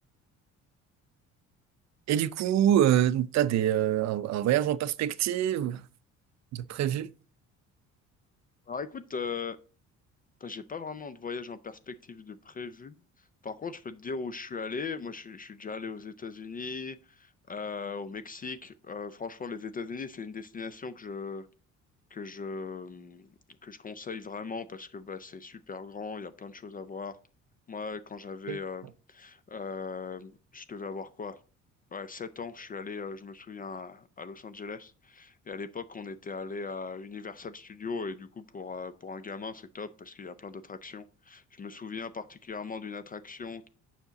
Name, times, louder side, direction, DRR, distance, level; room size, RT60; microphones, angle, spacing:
voice 1, 2.1-5.8 6.5-7.1 28.5-28.6, right 11 dB, 60° right, 0.5 m, -25 dB
voice 2, 8.7-9.6 10.4-13.0 13.4-21.5 22.1-23.3 23.6-27.2 27.7-31.4 31.9-43.7, left 5 dB, 30° left, 0.4 m, -39 dB
7.1 x 5.8 x 3.9 m
cardioid pair, 105°, 31 cm